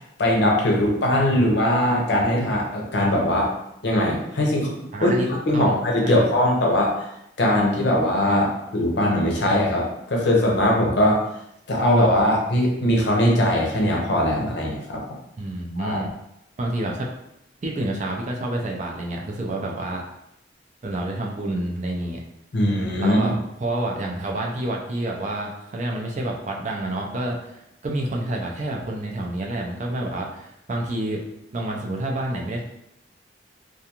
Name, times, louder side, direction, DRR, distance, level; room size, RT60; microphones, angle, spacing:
voice 1, 0.2-3.5 3.8-5.1 5.5-7.0 7.4-8.5 8.7-11.2 11.7-15.0 15.8-16.0 22.5-23.4, left 1 dB, 60° left, -1 dB, 0.6 m, -20 dB
voice 2, 4.9-5.3 5.5-6.4 8.3-8.4 15.4-16.1 16.6-17.1 17.6-20.0 20.8-22.2 23.0-23.3 23.6-31.2 31.5-32.6, right 1 dB, 40° right, 0 dB, 0.4 m, -28 dB
2.4 x 2.3 x 2.8 m, 0.81 s
head